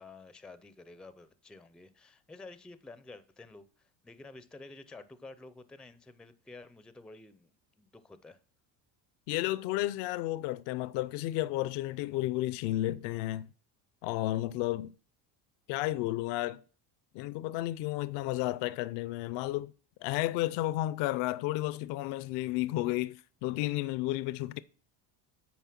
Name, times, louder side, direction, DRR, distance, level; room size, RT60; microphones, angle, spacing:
voice 1, 0.0-8.4, left 3 dB, ahead, 0.4 m, -51 dB
voice 2, 9.3-13.5 14.0-14.9 15.7-16.6 17.1-19.7 20.0-24.6, left 16 dB, 75° left, 0.6 m, -32 dB
9.4 x 4.5 x 5.8 m
cardioid pair, 125°, 44 cm